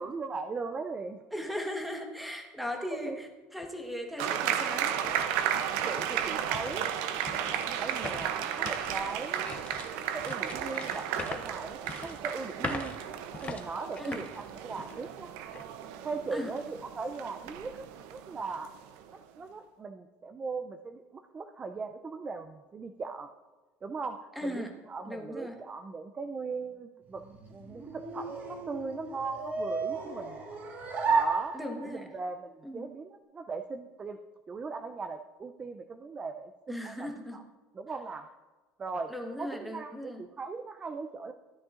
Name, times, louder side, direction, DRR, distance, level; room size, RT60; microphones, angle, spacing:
voice 1, 0.0-1.2 3.1-3.2 5.8-7.1 7.3-9.6 10.1-12.9 13.4-15.3 16.0-18.7 19.1-23.3 23.8-27.2 27.5-30.4 31.1-31.6 31.8-34.2 34.5-37.4 37.7-38.3 38.8-39.1 39.4-41.3, right 4 dB, 20° right, 7 dB, 0.4 m, -39 dB
voice 2, 1.3-5.0 14.0-14.2 16.3-16.5 24.4-24.7 25.1-25.6 31.5-32.1 32.6-32.9 36.7-37.4 39.1-40.2, left 1 dB, ahead, 3 dB, 1.2 m, -38 dB
sound 1, 3.6-3.7 4.2-15.1 15.5-15.7 16.2-16.6, left 5 dB, 25° left, 0.6 m, -44 dB
sound 2, 4.2-19.1, right 9 dB, 75° right, 0.6 m, -34 dB
sound 3, 27.1-32.1, right 4 dB, 40° right, 1.6 m, -33 dB
13.5 x 9.9 x 2.5 m, 1.2 s
cardioid pair, 135°, 5 cm